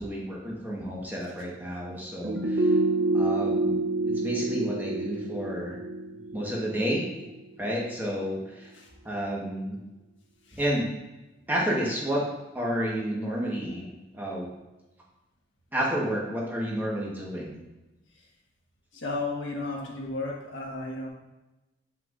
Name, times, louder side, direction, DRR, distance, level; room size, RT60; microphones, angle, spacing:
voice 1, 0.0-2.7 3.1-5.8 6.3-7.0 7.6-8.7 9.0-9.8 10.5-10.9 11.5-12.3 12.5-13.9 14.1-14.5 15.7-17.6, equal, 10° right, -4 dB, 1.2 m, -30 dB
sound 1, 2.2-7.4 7.7-7.8, right 2 dB, 65° right, 0.5 m, -28 dB
voice 2, 18.9-21.1, left 2 dB, 85° left, -2 dB, 1.4 m, -34 dB
7.7 x 5.8 x 2.5 m, 1.0 s
head